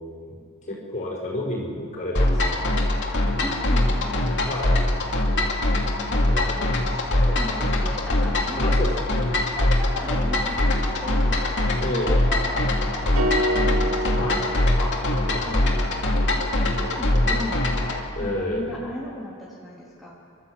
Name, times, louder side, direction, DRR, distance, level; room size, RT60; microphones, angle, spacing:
voice 1, 0.0-2.8 4.5-4.8 6.1-6.8 8.6-9.2 11.8-12.2 14.2-14.4 14.8-14.9 15.2-16.0 18.1-18.8, left 1 dB, 35° left, -3 dB, 5.5 m, -31 dB
sound 1, 2.2-18.0, left 1 dB, 55° left, 2.6 m, -22 dB
voice 2, 3.4-4.4 5.8-8.7 9.1-9.2 9.5-14.5 15.4-15.8 16.3-17.7 18.2-20.1, left 1 dB, ahead, -8 dB, 2.9 m, -36 dB
sound 2, 13.2-15.5, right 1 dB, 90° right, 1.9 m, -27 dB
30.0 x 12.5 x 8.2 m, 2.6 s
head